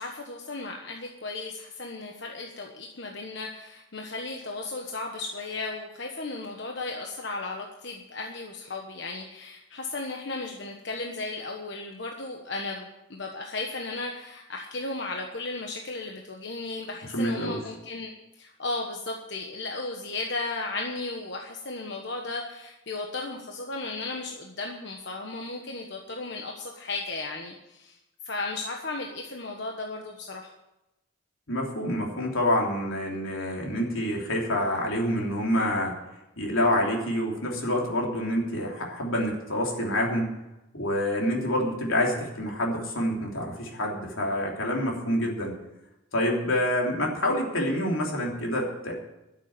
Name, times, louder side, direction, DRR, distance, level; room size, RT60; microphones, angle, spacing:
voice 1, 0.0-18.1 18.4-28.0 28.2-30.5, left 3 dB, 60° left, 1 dB, 1.3 m, -35 dB
voice 2, 17.1-17.6 31.5-35.9 36.4-40.3 40.7-45.6 46.1-48.9, left 1 dB, 85° left, -1 dB, 3.2 m, -27 dB
12.5 x 7.3 x 9.4 m, 0.95 s
head